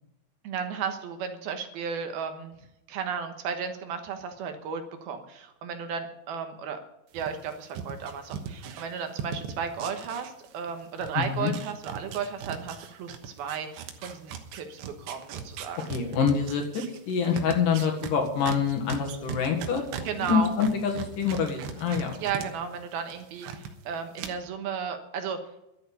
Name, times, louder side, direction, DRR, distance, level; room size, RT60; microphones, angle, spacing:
voice 1, 0.4-2.5 2.9-6.8 7.1-15.8 20.0-20.5 22.2-25.4, right 6 dB, 70° right, 6 dB, 3.0 m, -34 dB
sound 1, 7.1-10.7 11.0-22.5 22.8-23.7 24.2-24.3, right 7 dB, 90° right, 3.4 m, -38 dB
voice 2, 11.2-11.5 15.9-19.8 20.2-22.1, left 6 dB, 60° left, 3 dB, 3.0 m, -26 dB
12.0 x 8.9 x 8.4 m, 0.86 s
omnidirectional pair, 4.7 m